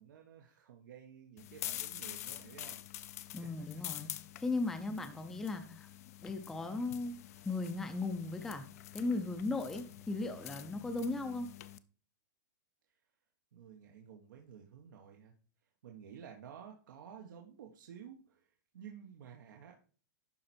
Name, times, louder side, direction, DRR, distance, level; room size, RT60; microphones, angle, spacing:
voice 1, 0.0-3.7 13.5-15.3 15.8-19.8, right 8 dB, 75° right, 1.4 m, -53 dB
sound 1, 1.4-11.8, left 13 dB, 50° left, 0.5 m, -47 dB
voice 2, 3.3-4.1 4.4-5.9 6.2-8.6 8.9-11.5, left 3 dB, 5° left, 0.6 m, -37 dB
11.5 x 4.6 x 4.4 m
supercardioid pair, 175°, 11 cm